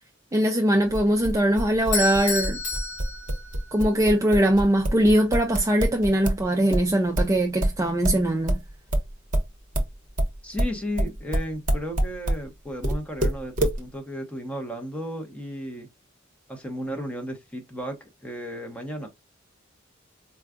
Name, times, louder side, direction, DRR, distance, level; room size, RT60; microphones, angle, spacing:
voice 1, 0.3-2.6 3.7-8.6, right 1 dB, 15° right, 0.4 m, -21 dB
sound 1, 0.9-6.4 6.7-12.4 12.8-13.8, right 1 dB, 40° right, 0.9 m, -25 dB
Bell / Doorbell, 1.9-4.0, left 4 dB, 60° left, 1.4 m, -31 dB
voice 2, 10.4-15.9 16.5-19.1, equal, 5° left, 0.8 m, -34 dB
4.4 x 2.3 x 2.3 m
head